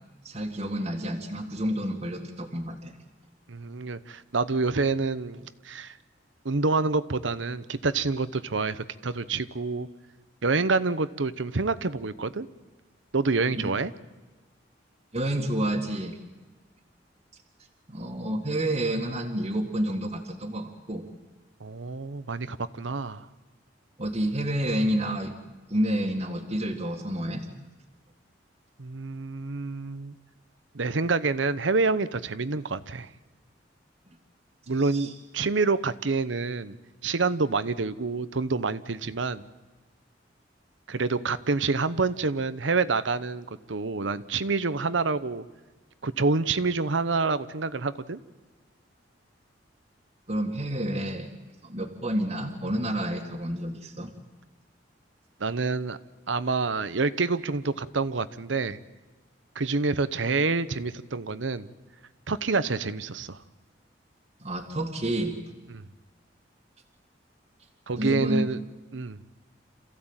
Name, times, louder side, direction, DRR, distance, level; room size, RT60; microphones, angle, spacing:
voice 1, 0.2-3.0 13.5-13.7 15.1-16.2 17.9-21.1 24.0-25.4 25.7-27.5 34.8-35.1 50.3-51.3 51.6-54.1 64.4-65.3 68.0-68.5, right 1 dB, 35° right, -1 dB, 2.0 m, -29 dB
voice 2, 3.5-5.9 6.4-9.9 10.4-12.5 13.1-13.9 21.6-23.3 28.8-30.2 30.7-33.1 34.7-36.8 37.0-39.4 40.9-45.4 46.0-48.2 55.4-56.0 56.3-58.8 59.5-61.7 62.3-63.4 65.7-65.8 67.9-68.6 68.9-69.2, right 4 dB, 90° right, 14 dB, 0.9 m, -27 dB
27.5 x 15.5 x 8.9 m, 1.2 s
head